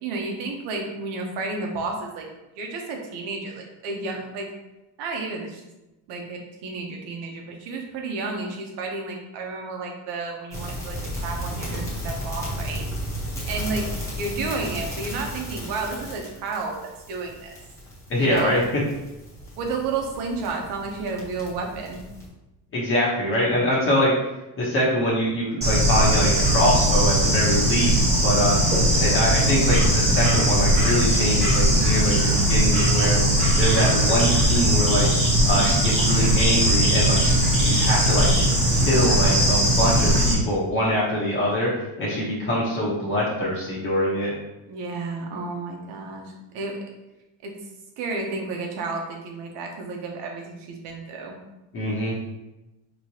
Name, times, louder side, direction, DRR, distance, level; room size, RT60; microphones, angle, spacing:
voice 1, 0.0-2.3 2.6-4.5 5.0-5.6 6.1-12.8 13.5-13.9 14.2-17.5 18.2-18.6 19.6-22.0 44.7-46.8 47.4-47.6 48.0-51.4, right 3 dB, 85° right, 2 dB, 1.0 m, -31 dB
sound 1, 10.5-22.3, equal, 5° left, 1.0 m, -34 dB
voice 2, 18.1-18.6 22.7-24.1 24.6-28.6 29.0-33.2 33.6-35.1 35.4-38.3 38.7-44.3 51.7-52.2, equal, 30° left, -6 dB, 1.0 m, -24 dB
Bird / Insect, 25.6-40.3, right 1 dB, 15° right, 1.2 m, -19 dB
4.8 x 3.2 x 2.8 m, 1.0 s
cardioid pair, 165°, 40 cm